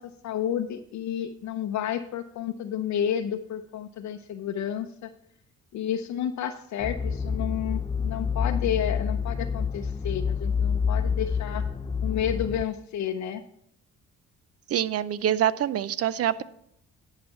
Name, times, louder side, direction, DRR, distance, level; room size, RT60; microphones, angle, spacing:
voice 1, 0.0-5.1 5.7-11.6 12.0-13.4, left 9 dB, 70° left, 6 dB, 0.6 m, -31 dB
sound 1, 6.8-12.6, left 6 dB, 15° left, 0.5 m, -28 dB
voice 2, 14.7-16.4, right 10 dB, 50° right, 18 dB, 0.5 m, -25 dB
10.5 x 5.7 x 5.7 m, 0.73 s
cardioid pair, 90°, 30 cm